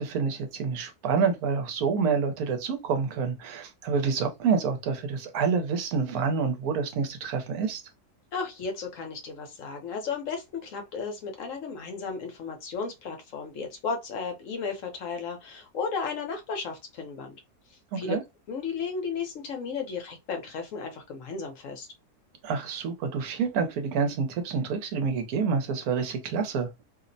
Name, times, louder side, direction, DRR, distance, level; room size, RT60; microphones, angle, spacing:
voice 1, 0.0-7.8 17.9-18.2 22.4-26.7, right 5 dB, 75° right, 1.1 m, -28 dB
voice 2, 8.3-17.4 18.0-18.2 18.5-21.9, left 5 dB, 65° left, 1.0 m, -34 dB
2.8 x 2.0 x 2.5 m
omnidirectional pair, 1.6 m